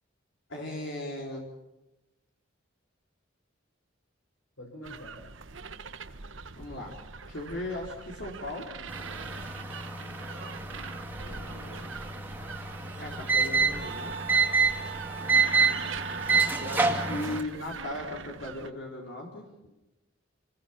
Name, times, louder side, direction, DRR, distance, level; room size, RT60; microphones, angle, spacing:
voice 1, 0.5-1.5 6.6-6.9 7.3-8.7 13.0-14.1 16.6-19.4, left 1 dB, 65° left, -1 dB, 3.9 m, -37 dB
voice 2, 4.6-5.2 11.2-11.9 15.1-15.6 19.6-19.7, left 1 dB, 85° left, 1 dB, 5.3 m, -48 dB
sound 1, 4.8-18.7, right 5 dB, 75° right, 1.2 m, -42 dB
sound 2, 8.9-17.4, right 5 dB, 10° right, 1.9 m, -28 dB
Wind instrument woodwind instrument, 13.7-17.4, right 4 dB, 45° right, 2.5 m, -40 dB
27.5 x 20.5 x 5.9 m, 0.97 s
head